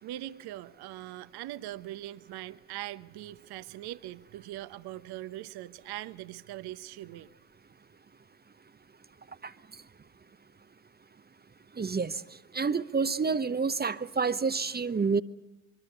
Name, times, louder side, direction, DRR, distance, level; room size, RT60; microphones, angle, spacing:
voice 1, 0.0-7.3, right 14 dB, 55° right, 14 dB, 1.0 m, -41 dB
voice 2, 11.8-12.2 12.5-15.2, right 5 dB, 20° right, 13 dB, 0.9 m, -28 dB
25.5 x 23.0 x 6.9 m, 0.94 s
hypercardioid pair, 60°, 46 cm